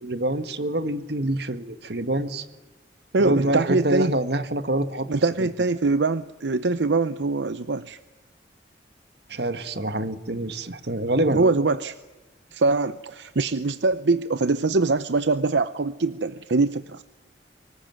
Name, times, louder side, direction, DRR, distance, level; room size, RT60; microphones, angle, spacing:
voice 1, 0.0-2.4 3.2-5.1 5.4-5.5 9.3-11.5, right 1 dB, 65° right, 10 dB, 1.6 m, -26 dB
voice 2, 3.1-4.2 5.1-8.0 11.3-12.0 12.5-17.0, right 3 dB, 80° right, 13 dB, 0.7 m, -23 dB
24.5 x 20.0 x 9.2 m, 1.2 s
head